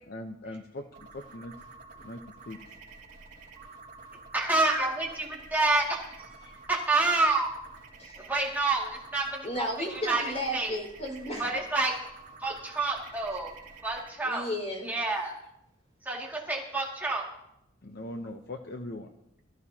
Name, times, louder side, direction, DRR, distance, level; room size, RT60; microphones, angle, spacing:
voice 1, 0.1-1.5 2.0-2.6 17.8-19.1, left 1 dB, 50° left, 4 dB, 0.8 m, -40 dB
sound 1, 0.9-14.1, right 4 dB, 40° right, 4.0 m, -50 dB
voice 2, 4.3-7.5 8.2-10.2 10.5-10.7 11.4-11.9 12.4-13.5 13.8-14.4 14.8-15.3 16.0-17.2, right 3 dB, 10° right, -3 dB, 2.3 m, -28 dB
voice 3, 9.4-11.4 14.2-14.9, equal, 35° left, 0 dB, 5.0 m, -34 dB
21.5 x 14.5 x 2.9 m, 0.82 s
head